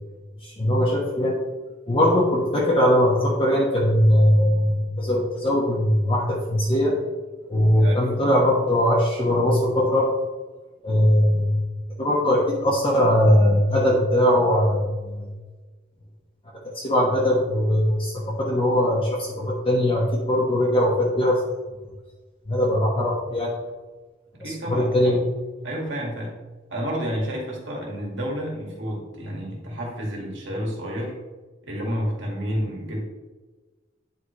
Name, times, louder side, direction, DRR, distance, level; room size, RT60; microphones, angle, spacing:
voice 1, 0.4-1.4 1.9-7.0 7.5-10.1 10.8-11.6 12.0-15.3 16.7-21.4 22.5-23.5 24.4-25.2, equal, 30° left, -4 dB, 1.1 m, -20 dB
voice 2, 24.4-24.9 25.6-26.3 26.7-31.1 31.7-33.0, equal, 65° right, -2 dB, 2.1 m, -30 dB
9.6 x 4.9 x 3.2 m, 1.3 s
head